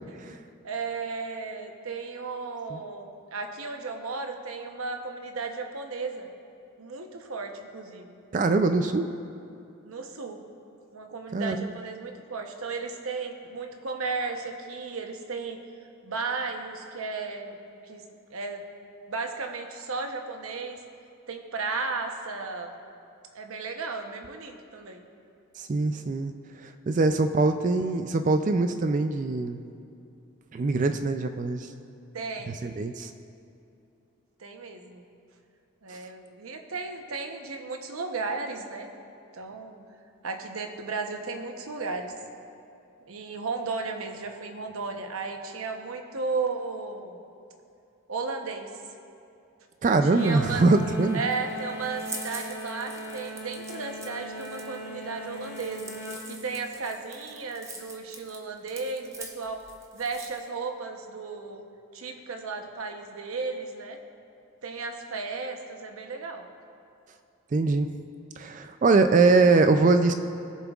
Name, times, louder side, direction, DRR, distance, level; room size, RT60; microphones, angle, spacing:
voice 1, 0.6-6.3 6.8-8.2 9.8-10.4 10.9-15.6 16.0-17.6 17.8-18.0 18.3-18.6 19.1-20.8 21.3-22.7 23.3-25.0 32.1-32.6 34.4-35.0 35.8-38.9 39.3-39.8 40.2-42.1 43.1-47.2 48.1-48.7 50.0-50.7 51.1-55.9 56.3-59.6 59.9-61.6 61.9-64.0 64.6-66.4, right 4 dB, 80° right, 4 dB, 0.9 m, -34 dB
voice 2, 8.3-9.1 11.3-11.7 25.6-26.3 26.6-29.6 30.5-31.7 32.5-33.1 49.8-51.2 67.5-67.9 68.4-70.1, right 3 dB, 35° right, 8 dB, 0.3 m, -23 dB
sound 1, 50.2-56.3, equal, 55° left, 1.6 m, -39 dB
sound 2, 51.1-60.5, right 2 dB, 15° right, 0.7 m, -44 dB
19.5 x 7.1 x 2.4 m, 2.6 s
head